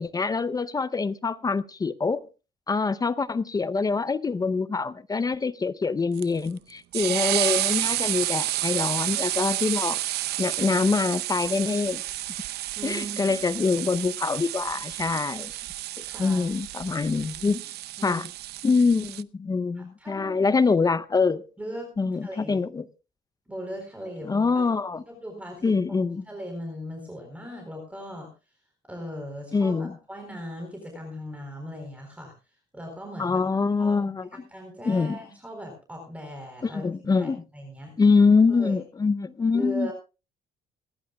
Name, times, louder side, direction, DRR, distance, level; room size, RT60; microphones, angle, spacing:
voice 1, 0.0-2.2 2.7-10.0 10.4-12.0 12.8-15.6 16.2-17.6 18.0-18.3 18.6-21.4 22.0-22.8 24.2-25.0 25.6-26.2 29.5-29.9 33.2-34.3 34.8-35.2 36.6-37.4 38.0-39.9, left 4 dB, 20° left, 0.6 m, -24 dB
sound 1, 6.2-19.2, right 15 dB, 75° right, 0.6 m, -30 dB
voice 2, 12.8-13.4 16.0-16.4 18.0-18.2 19.7-20.4 21.6-21.9 22.2-22.6 23.5-24.7 25.1-28.3 28.9-32.3 32.7-33.4 33.8-34.0 34.5-36.9 37.1-37.9 38.5-38.8 39.5-39.9, equal, 10° right, 4.1 m, -38 dB
26.5 x 11.5 x 2.3 m
cardioid pair, 110°, 17 cm